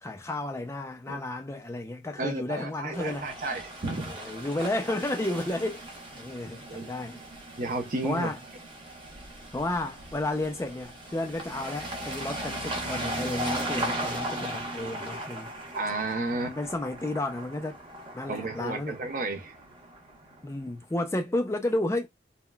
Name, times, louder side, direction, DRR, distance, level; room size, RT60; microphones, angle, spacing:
voice 1, 0.0-3.3 4.0-7.2 8.0-8.4 9.5-15.5 16.4-17.8 18.1-19.0 20.4-22.1, left 2 dB, 15° left, 0.3 m, -32 dB
voice 2, 2.2-4.1 6.7-6.9 7.6-8.3 15.7-16.6 18.3-19.5, right 2 dB, 45° right, 0.7 m, -32 dB
sound 1, 2.9-20.6, right 1 dB, 25° right, 1.0 m, -38 dB
3.7 x 2.2 x 2.2 m
head